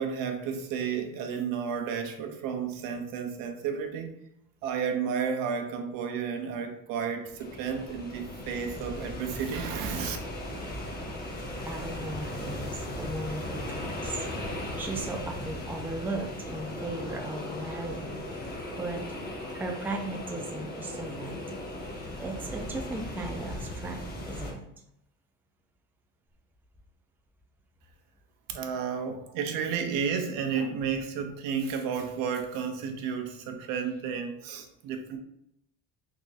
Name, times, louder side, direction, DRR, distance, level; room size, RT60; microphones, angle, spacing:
voice 1, 0.0-4.2 4.6-10.2 28.5-35.2, right 6 dB, 75° right, 5 dB, 0.7 m, -32 dB
sound 1, 7.2-24.5, left 1 dB, 30° left, 1.0 m, -37 dB
voice 2, 11.6-14.2 14.8-19.0 19.3-21.6 21.9-24.6, right 2 dB, 5° right, 1 dB, 0.4 m, -37 dB
3.6 x 3.0 x 2.7 m, 0.79 s
cardioid pair, 125°, 33 cm